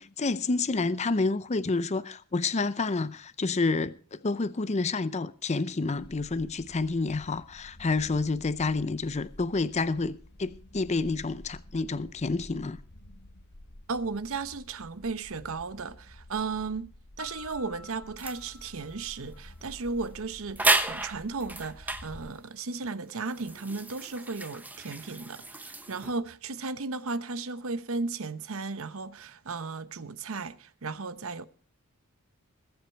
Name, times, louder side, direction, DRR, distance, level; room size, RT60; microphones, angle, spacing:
voice 1, 0.0-12.8, left 3 dB, 30° left, 0.6 m, -29 dB
sound 1, 6.0-22.3, left 1 dB, 55° left, 1.4 m, -50 dB
voice 2, 13.9-16.9 17.2-31.4, right 4 dB, 65° right, 0.9 m, -35 dB
Piano, 17.2-20.0, left 4 dB, 70° left, 2.0 m, -50 dB
sound 2, 18.2-18.4 19.6-19.8 20.0-20.1 20.6-22.1 22.8-26.1, right 2 dB, 10° right, 0.9 m, -31 dB
21.0 x 8.0 x 4.5 m
head